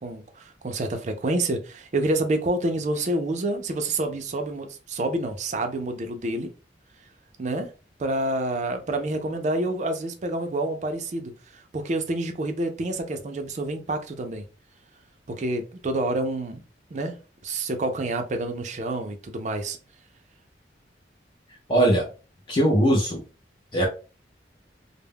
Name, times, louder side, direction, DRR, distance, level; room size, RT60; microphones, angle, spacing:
voice 1, 0.0-6.5 7.4-7.7 8.0-14.4 15.3-16.6 16.9-17.1 17.4-19.8, right 2 dB, 40° right, 0.4 m, -28 dB
voice 2, 21.7-22.0 22.5-23.2 23.7-23.9, right 1 dB, 25° left, 0.5 m, -20 dB
2.2 x 2.0 x 3.4 m
head